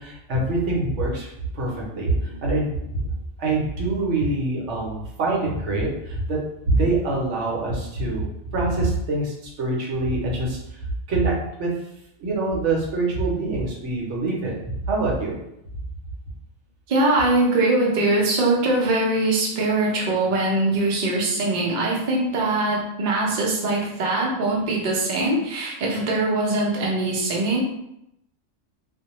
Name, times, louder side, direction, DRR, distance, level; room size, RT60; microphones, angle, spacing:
voice 1, 0.0-3.0 3.4-6.4 6.7-8.3 8.5-10.8 11.1-11.7 12.2-15.4, right 2 dB, 65° right, -2 dB, 0.9 m, -25 dB
voice 2, 16.9-27.6, right 2 dB, 50° right, -2 dB, 0.5 m, -22 dB
2.4 x 2.1 x 2.9 m, 0.82 s
omnidirectional pair, 1.4 m